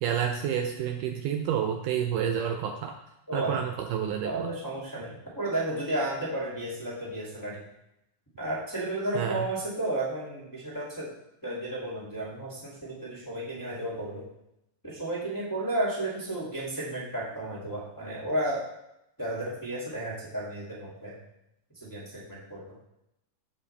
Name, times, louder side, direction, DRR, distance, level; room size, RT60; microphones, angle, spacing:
voice 1, 0.0-2.9 3.3-4.5 9.1-9.4, right 8 dB, 80° right, 4 dB, 2.0 m, -29 dB
voice 2, 3.3-3.6 4.2-7.6 8.4-11.1 11.4-14.2 14.8-18.6 19.2-21.2 21.8-22.6, right 1 dB, 5° left, -7 dB, 1.7 m, -33 dB
15.0 x 5.0 x 3.4 m, 0.83 s
omnidirectional pair, 4.0 m